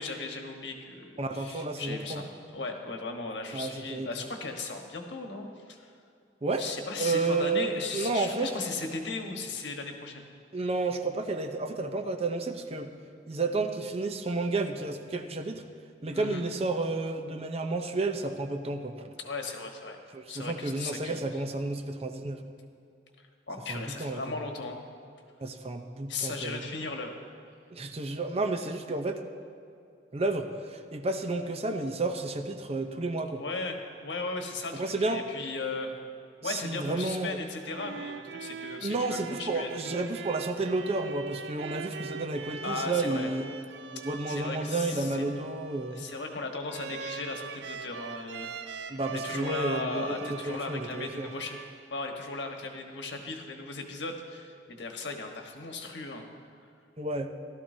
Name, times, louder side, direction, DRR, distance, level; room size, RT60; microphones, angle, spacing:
voice 1, 0.0-5.9 6.6-10.2 16.1-16.4 19.2-20.0 20.3-21.3 23.5-24.8 26.1-27.1 33.4-35.9 36.4-39.7 42.6-43.3 43.9-45.3 45.9-48.5 49.1-51.6 51.9-56.2, left 3 dB, 90° left, 3 dB, 1.3 m, -37 dB
voice 2, 1.2-2.3 3.5-4.3 6.4-6.7 7.0-8.5 10.5-12.9 13.3-15.6 16.0-19.1 20.1-22.4 23.7-24.3 25.4-26.7 27.7-29.2 30.1-33.4 34.7-35.2 36.4-37.4 38.8-43.5 43.9-46.1 48.9-51.3 57.0-57.3, right 3 dB, 35° right, 6 dB, 0.7 m, -31 dB
sound 1, 37.5-52.1, right 6 dB, 70° right, 0.4 m, -42 dB
16.0 x 12.5 x 2.7 m, 2.5 s
head